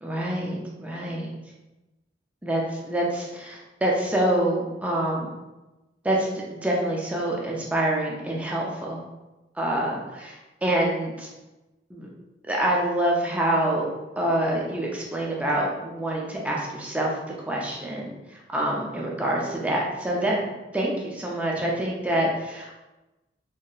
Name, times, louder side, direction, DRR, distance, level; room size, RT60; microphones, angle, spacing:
voice 1, 0.0-1.3 2.4-5.4 6.0-9.1 9.6-11.3 11.9-12.1 12.5-17.1 17.5-20.4 20.7-22.7, right 1 dB, 10° right, -3 dB, 0.4 m, -26 dB
2.9 x 2.7 x 2.3 m, 1.0 s
head